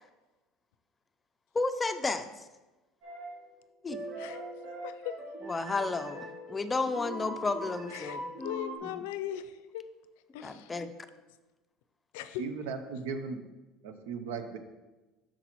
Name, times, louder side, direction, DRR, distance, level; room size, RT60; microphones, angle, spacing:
voice 1, 1.5-2.5 3.8-4.0 5.4-8.3 10.4-10.9, left 3 dB, 15° left, 9 dB, 0.4 m, -32 dB
sound 1, 3.0-3.4 3.9-8.8, right 1 dB, 45° right, 1.6 m, -41 dB
voice 2, 4.8-5.2 7.9-8.2 8.4-9.9 10.3-10.8 12.1-12.4, left 12 dB, 90° left, 11 dB, 0.4 m, -39 dB
voice 3, 12.4-13.5 13.8-14.6, right 5 dB, 90° right, 8 dB, 0.7 m, -37 dB
8.0 x 6.1 x 3.0 m, 1.1 s
cardioid pair, 130°, 0 cm